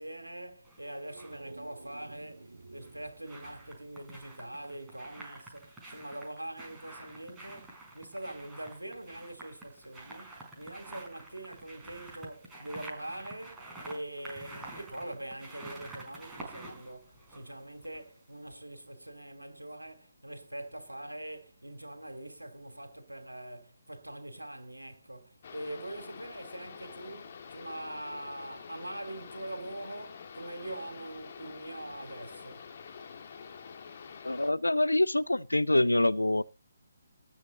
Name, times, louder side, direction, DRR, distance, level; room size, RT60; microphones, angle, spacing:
voice 1, 0.0-32.6, right 1 dB, 80° right, 2.9 m, -43 dB
sound 1, 0.6-1.4 2.6-18.2 18.5-18.6, right 2 dB, 10° right, 4.6 m, -49 dB
sound 2, 1.0-5.0, right 2 dB, 65° right, 2.0 m, -52 dB
sound 3, 25.4-34.5, left 6 dB, 40° left, 2.1 m, -47 dB
voice 2, 34.2-36.4, left 1 dB, 80° left, 0.7 m, -25 dB
19.0 x 8.3 x 4.0 m
figure-of-eight pair, 140°, 0 cm